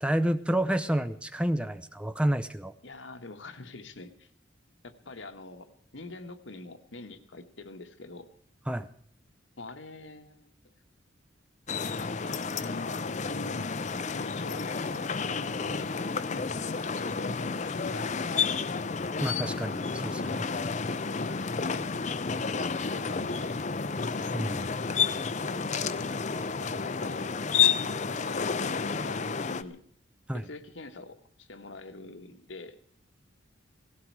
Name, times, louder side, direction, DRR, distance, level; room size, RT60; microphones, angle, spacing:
voice 1, 0.0-2.7 8.7-8.9 19.2-20.5 24.3-24.7 30.3-30.4, right 1 dB, 5° right, 10 dB, 0.6 m, -29 dB
voice 2, 2.8-4.3 4.8-8.3 9.6-10.5 12.0-15.9 16.2-18.6 21.1-21.9 22.4-23.7 25.5-27.4 28.1-29.8 30.3-32.8, left 2 dB, 80° left, 6 dB, 1.5 m, -45 dB
sound 1, 11.7-29.6, left 5 dB, 40° left, 0.6 m, -31 dB
18.0 x 16.5 x 4.7 m, 0.62 s
head